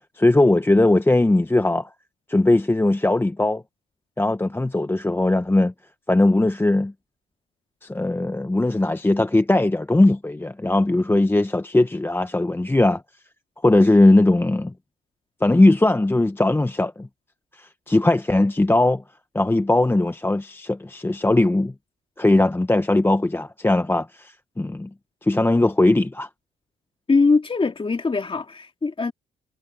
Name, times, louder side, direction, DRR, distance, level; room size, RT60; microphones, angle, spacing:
voice 1, 0.2-1.9 2.3-3.6 4.2-5.7 6.1-6.9 7.8-13.0 13.6-14.7 15.4-17.1 17.5-19.0 19.3-21.7 22.2-24.9 25.2-26.3, left 2 dB, 10° left, 0.9 m, -19 dB
voice 2, 27.1-29.1, left 4 dB, 25° left, 2.2 m, -21 dB
cardioid pair, 90°, 20 cm